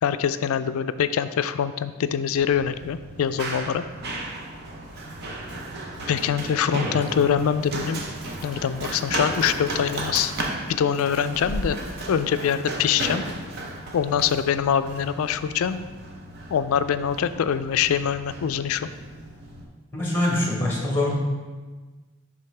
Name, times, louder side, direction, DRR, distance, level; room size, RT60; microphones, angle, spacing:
voice 1, 0.0-3.8 6.1-8.1 8.4-10.3 10.7-11.8 12.1-13.2 13.9-15.8 16.5-18.9, left 8 dB, 70° left, 12 dB, 0.3 m, -24 dB
Run, 2.3-19.6, right 2 dB, 45° right, 0.8 m, -34 dB
voice 2, 19.9-21.1, left 1 dB, 10° left, -3 dB, 1.3 m, -24 dB
10.0 x 3.7 x 3.3 m, 1.3 s
head